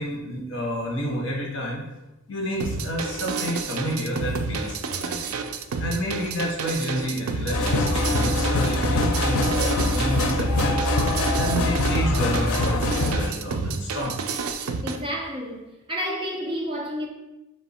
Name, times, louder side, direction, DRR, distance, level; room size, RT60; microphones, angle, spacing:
voice 1, 0.0-1.8 2.3-5.2 5.8-10.9 11.4-14.2, equal, 55° left, 0.9 m, -29 dB
sound 1, 2.6-15.0, right 4 dB, 80° right, 0.4 m, -30 dB
sound 2, 7.5-13.3, left 2 dB, 90° left, 0.5 m, -23 dB
voice 2, 14.8-17.1, equal, 25° right, 0.6 m, -30 dB
3.4 x 3.3 x 4.2 m
head